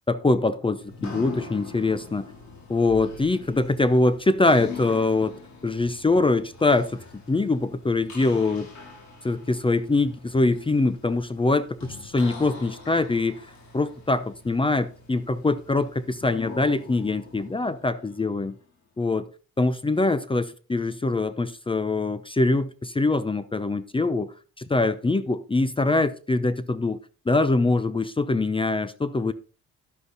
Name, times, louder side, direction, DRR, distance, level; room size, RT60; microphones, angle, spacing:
voice 1, 0.1-2.3 2.7-8.7 9.3-13.4 13.7-18.6 19.0-19.3 19.6-27.0 27.3-29.3, left 2 dB, 15° left, 0.7 m, -23 dB
sound 1, 0.8-18.6, left 5 dB, 70° left, 4.4 m, -43 dB
11.5 x 7.9 x 4.0 m
cardioid pair, 90°, 30 cm